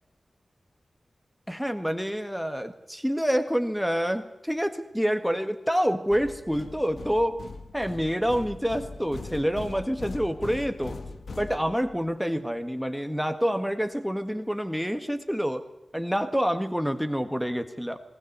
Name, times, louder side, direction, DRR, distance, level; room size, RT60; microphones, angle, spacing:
voice 1, 1.5-7.4 7.7-11.0 11.4-15.7 15.9-18.0, equal, ahead, 9 dB, 1.7 m, -27 dB
sound 1, 6.1-12.1, left 3 dB, 80° left, 1.9 m, -40 dB
19.5 x 19.0 x 8.1 m, 0.86 s
wide cardioid pair, 75°, 0 cm